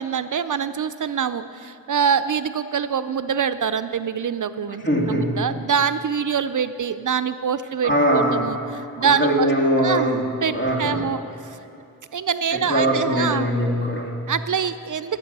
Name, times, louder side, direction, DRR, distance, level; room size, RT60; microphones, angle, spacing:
voice 1, 0.0-9.5 9.8-10.1 10.4-11.6 12.1-13.5 14.3-15.2, right 7 dB, 60° right, 12 dB, 0.5 m, -25 dB
voice 2, 4.8-5.4 7.8-8.5 9.0-11.1 12.5-14.2, equal, 30° left, -1 dB, 2.4 m, -21 dB
19.0 x 8.1 x 5.4 m, 2.9 s
cardioid pair, 50°, 35 cm